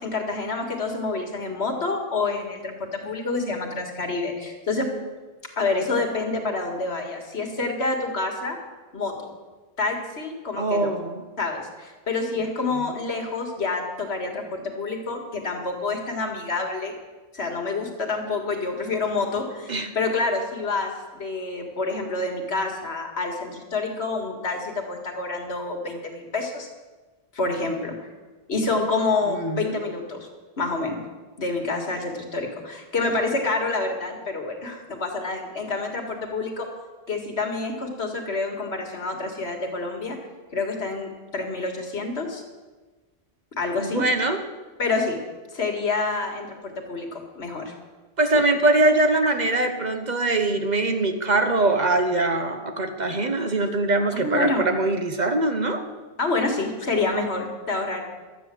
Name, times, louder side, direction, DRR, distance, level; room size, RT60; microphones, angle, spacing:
voice 1, 0.0-4.9 5.6-8.6 8.9-9.3 9.8-10.9 11.4-17.0 17.3-26.7 27.3-28.0 28.5-30.3 30.6-31.0 31.4-36.7 37.1-40.2 40.5-42.4 43.6-44.0 44.8-45.2 45.5-47.7 54.1-54.6 55.8-55.9 56.2-58.0, left 3 dB, 80° left, 3 dB, 2.1 m, -28 dB
voice 2, 10.6-11.2 19.7-19.9 29.3-29.7 43.8-44.4 48.2-55.8, right 2 dB, 45° right, 6 dB, 1.2 m, -22 dB
12.5 x 8.6 x 7.6 m, 1.3 s
omnidirectional pair, 1.1 m